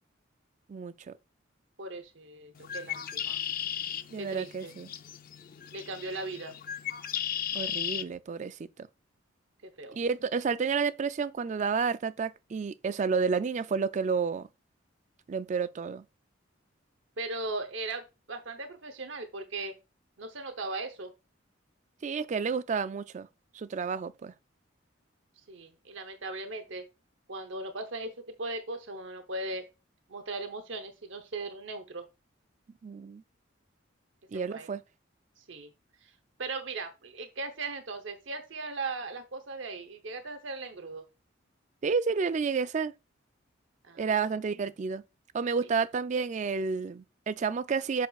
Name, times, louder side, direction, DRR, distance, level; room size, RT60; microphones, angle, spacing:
voice 1, 0.7-1.1 4.1-4.9 7.5-8.6 9.9-14.5 15.3-16.0 22.0-23.3 23.5-24.3 32.8-33.2 34.3-34.8 41.8-42.9 44.0-45.0 45.3-48.1, right 5 dB, 40° right, 0.3 m, -30 dB
voice 2, 1.8-3.4 4.2-4.7 5.7-6.5 9.8-10.0 17.2-19.8 20.2-21.1 25.5-26.9 27.3-29.7 30.1-32.0 34.5-34.7 35.4-35.7 36.0-36.1 36.4-41.0 43.8-44.2, right 3 dB, 70° right, 0.9 m, -38 dB
Bird, 2.6-8.0, left 9 dB, 45° left, 0.5 m, -36 dB
7.8 x 6.6 x 2.3 m
head